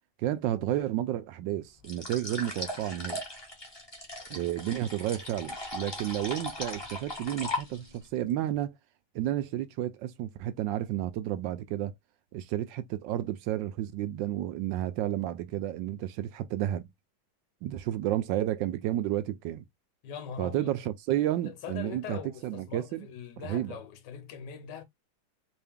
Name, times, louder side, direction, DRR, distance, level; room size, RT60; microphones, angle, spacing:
voice 1, 0.2-3.2 4.3-8.8 9.1-11.9 12.3-16.9 17.6-19.7 20.4-23.1 23.4-23.8, right 13 dB, 75° right, 1.2 m, -31 dB
sound 1, 1.8-8.1, left 2 dB, 20° left, 0.6 m, -38 dB
voice 2, 20.0-20.7 21.4-24.8, left 8 dB, 65° left, 1.3 m, -42 dB
3.4 x 2.7 x 3.5 m
omnidirectional pair, 2.2 m